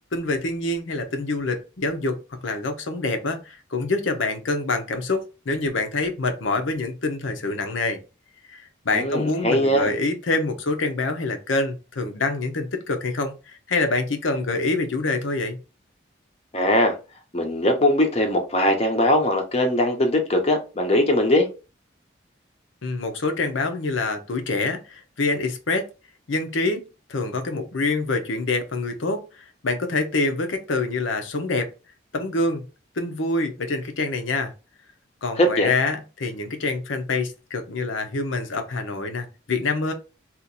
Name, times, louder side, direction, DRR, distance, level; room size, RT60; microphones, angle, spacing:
voice 1, 0.1-8.0 8.5-15.6 22.8-25.9 26.3-31.7 32.1-32.7 33.0-34.5 35.2-39.9, left 3 dB, 85° left, 0.8 m, -26 dB
voice 2, 8.9-9.9 16.5-17.0 17.3-21.5 35.4-35.7, left 1 dB, 30° left, 0.7 m, -20 dB
2.8 x 2.5 x 3.8 m
head